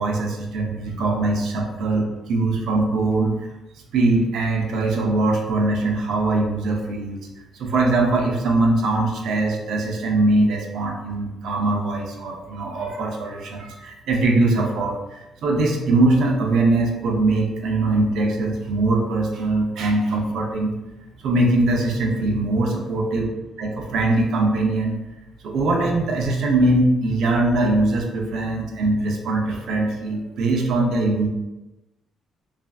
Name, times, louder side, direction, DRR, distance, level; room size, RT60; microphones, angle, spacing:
voice 1, 0.0-3.3 3.9-7.3 7.5-20.7 21.2-23.3 23.6-25.0 25.4-31.3, right 2 dB, 75° right, 1 dB, 0.5 m, -21 dB
3.3 x 2.5 x 2.3 m, 1.0 s
cardioid pair, 90°, 0 cm